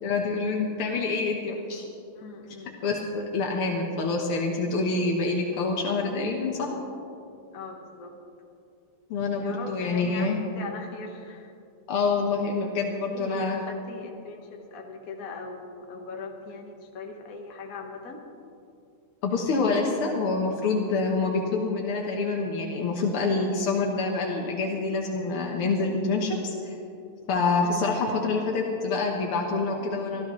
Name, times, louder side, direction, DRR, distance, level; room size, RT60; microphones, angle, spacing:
voice 1, 0.0-1.9 2.8-6.7 9.1-10.4 11.9-13.6 19.2-26.8 27.3-30.3, left 3 dB, 90° left, -1 dB, 2.1 m, -26 dB
voice 2, 2.1-2.7 7.5-8.2 9.4-11.5 13.1-18.2 27.6-27.8, left 4 dB, 45° left, 1 dB, 1.6 m, -40 dB
24.0 x 13.5 x 3.2 m, 2.6 s
omnidirectional pair, 2.3 m